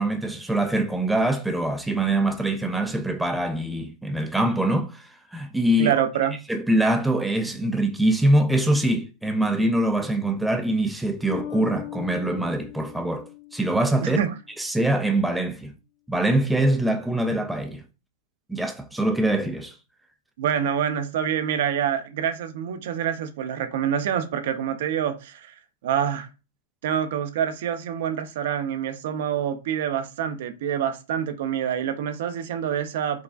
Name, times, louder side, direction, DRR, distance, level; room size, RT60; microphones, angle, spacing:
voice 1, 0.0-5.9 6.5-13.2 13.5-14.2 14.6-15.7 16.1-17.8 18.5-19.8, right 1 dB, 5° right, 0.3 m, -23 dB
voice 2, 5.8-6.4 14.0-14.3 20.4-25.5 25.8-26.3 26.8-33.2, right 9 dB, 65° right, 0.6 m, -26 dB
Bass guitar, 11.3-14.3, left 15 dB, 60° left, 0.5 m, -39 dB
4.7 x 2.4 x 2.3 m
hypercardioid pair, 130°, 0 cm